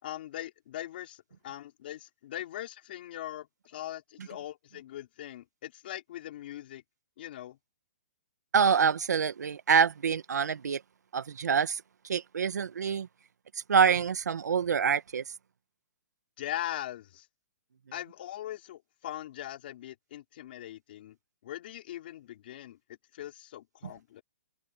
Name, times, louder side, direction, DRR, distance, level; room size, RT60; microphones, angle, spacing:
voice 1, 0.0-6.8 7.2-7.6 16.4-17.3 17.9-21.2 21.4-22.8 23.1-24.2, left 13 dB, 35° left, 4.4 m, -41 dB
voice 2, 8.5-10.8 11.1-13.1 13.7-15.2, right 6 dB, 90° right, 1.9 m, -26 dB
hypercardioid pair, 175°, 9 cm